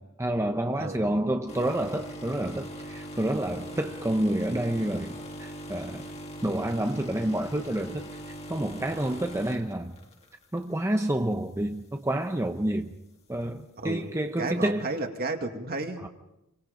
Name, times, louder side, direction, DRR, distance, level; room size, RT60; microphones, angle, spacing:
voice 1, 0.0-5.1 5.4-6.0 6.4-8.1 8.5-9.9 10.5-12.9 13.3-14.9 16.0-16.1, right 1 dB, 15° right, 0.9 m, -29 dB
voice 2, 0.8-1.1 3.6-3.8 8.9-9.2 13.8-14.0 14.4-16.0, right 2 dB, 45° right, 2.3 m, -33 dB
sound 1, 1.5-10.6 11.1-11.3 12.2-12.3, equal, 30° left, 2.3 m, -41 dB
28.5 x 24.0 x 5.3 m
head